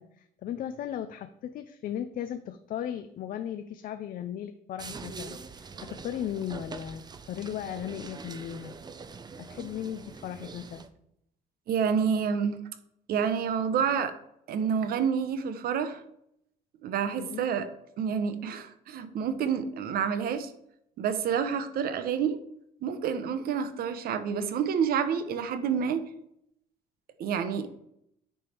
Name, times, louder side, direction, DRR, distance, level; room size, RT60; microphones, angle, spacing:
voice 1, 0.0-8.8 9.4-10.8 17.2-17.4, left 10 dB, 55° left, 9 dB, 0.5 m, -37 dB
sound 1, 4.8-10.9, right 4 dB, 25° right, 0.6 m, -44 dB
voice 2, 11.7-12.6 13.1-14.1 14.5-16.0 16.8-17.7 18.0-20.5 21.0-22.4 22.8-26.0 27.2-27.8, right 7 dB, 65° right, 10 dB, 0.9 m, -28 dB
9.7 x 3.4 x 4.4 m, 0.75 s
cardioid pair, 110°, 17 cm